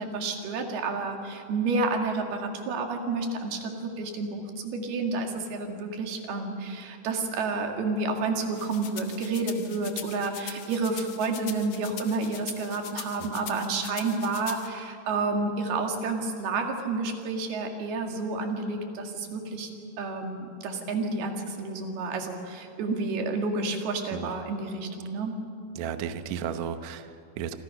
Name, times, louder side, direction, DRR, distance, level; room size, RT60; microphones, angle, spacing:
voice 1, 0.0-19.7 20.0-25.4, right 3 dB, 90° right, 3 dB, 4.1 m, -30 dB
sound 1, 8.5-14.7, left 9 dB, 65° left, 1.5 m, -41 dB
voice 2, 25.8-27.6, right 8 dB, 70° right, 9 dB, 1.9 m, -34 dB
27.5 x 26.5 x 5.8 m, 2.4 s
omnidirectional pair, 4.3 m